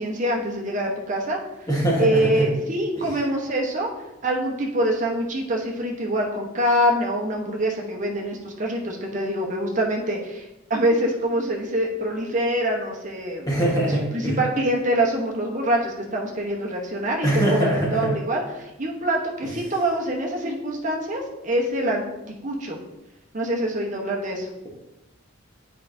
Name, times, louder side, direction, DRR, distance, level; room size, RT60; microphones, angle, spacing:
voice 1, 0.0-1.4 2.0-3.9 4.2-13.5 13.8-22.0 22.4-22.8 23.3-24.5, right 1 dB, 40° right, 0 dB, 1.0 m, -25 dB
voice 2, 1.7-2.5 3.0-3.2 13.5-14.4 17.2-18.1, right 1 dB, 20° left, -5 dB, 1.3 m, -22 dB
8.2 x 4.7 x 2.7 m, 0.95 s
head